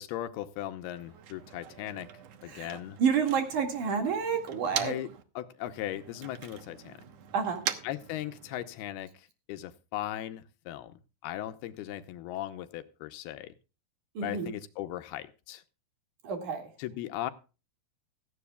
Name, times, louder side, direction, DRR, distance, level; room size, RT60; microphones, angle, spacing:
voice 1, 0.0-2.1 2.4-3.0 4.7-5.1 5.4-7.0 7.8-13.5 14.2-15.6 16.8-17.3, left 13 dB, 80° left, 2.7 m, -38 dB
Motor vehicle (road), 0.8-5.2 5.5-8.8, right 9 dB, 80° right, 1.4 m, -42 dB
voice 2, 3.0-4.9 7.3-7.6 14.1-14.5 16.2-16.7, right 6 dB, 55° right, 3.3 m, -29 dB
16.5 x 15.0 x 2.3 m
omnidirectional pair, 4.7 m